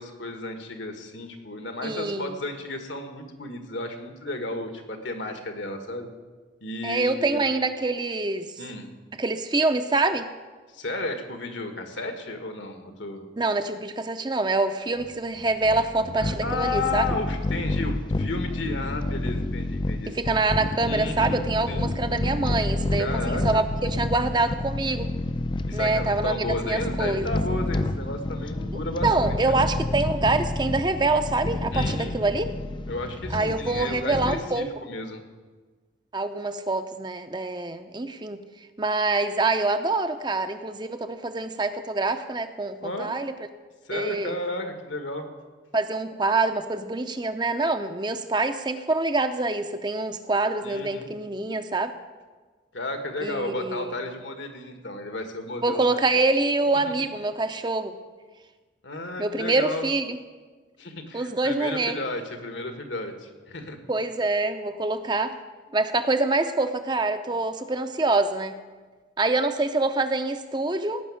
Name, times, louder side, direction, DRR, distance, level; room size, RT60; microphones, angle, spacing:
voice 1, 0.0-6.1 6.6-7.4 8.6-8.9 10.7-13.3 16.2-20.2 20.8-21.4 21.7-21.9 23.0-23.7 25.7-29.7 31.7-32.2 32.9-35.2 42.8-43.1 43.9-45.2 50.6-51.1 52.7-55.8 58.8-59.9 60.8-63.8, left 2 dB, 75° left, 6 dB, 1.7 m, -33 dB
voice 2, 1.8-2.4 6.8-8.5 9.2-10.3 13.4-17.0 20.1-25.1 25.7-27.3 29.0-32.5 33.3-34.7 36.1-38.4 38.8-43.3 43.9-44.4 45.7-51.9 53.2-53.9 55.6-58.0 59.2-60.2 61.1-62.0 63.9-65.4 65.7-68.5 69.2-71.0, right 3 dB, 25° right, 9 dB, 0.6 m, -25 dB
sound 1, 15.0-34.4, left 2 dB, 25° left, 0.5 m, -29 dB
17.5 x 6.0 x 8.6 m, 1.4 s
head